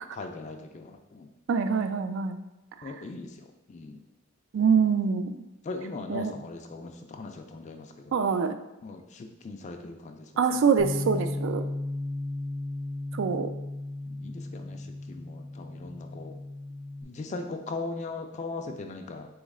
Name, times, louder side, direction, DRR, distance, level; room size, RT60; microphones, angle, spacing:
voice 1, 0.1-1.3 2.8-3.3 3.7-4.0 5.6-8.2 8.8-10.3 10.5-10.6 14.1-14.8 15.1-16.4 17.0-19.3, left 3 dB, 35° left, 4 dB, 0.3 m, -39 dB
voice 2, 1.5-2.4 4.5-5.4 6.1-6.3 8.1-8.6 10.4-11.6 13.1-13.5, right 6 dB, 65° right, 9 dB, 0.3 m, -25 dB
Bass guitar, 10.8-17.0, left 2 dB, 75° left, 0.6 m, -35 dB
3.9 x 3.1 x 3.6 m, 0.98 s
head